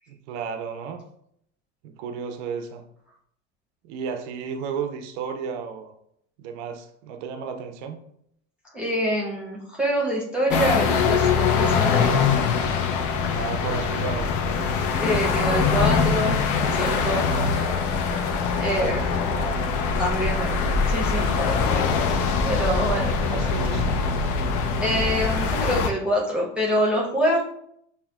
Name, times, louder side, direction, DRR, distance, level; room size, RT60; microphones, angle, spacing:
voice 1, 0.1-1.0 1.8-2.8 3.8-5.9 6.4-8.0 13.3-14.3 18.5-19.0 22.9-24.0, right 6 dB, 70° right, 6 dB, 0.5 m, -33 dB
voice 2, 8.7-12.2 15.0-17.3 17.6-18.0 18.6-19.0 19.9-21.9 22.5-23.1 24.8-27.4, equal, 5° right, -3 dB, 0.8 m, -26 dB
sound 1, 10.5-25.9, left 5 dB, 60° left, 0.6 m, -23 dB
5.6 x 2.1 x 2.3 m, 0.71 s
hypercardioid pair, 85°, 36 cm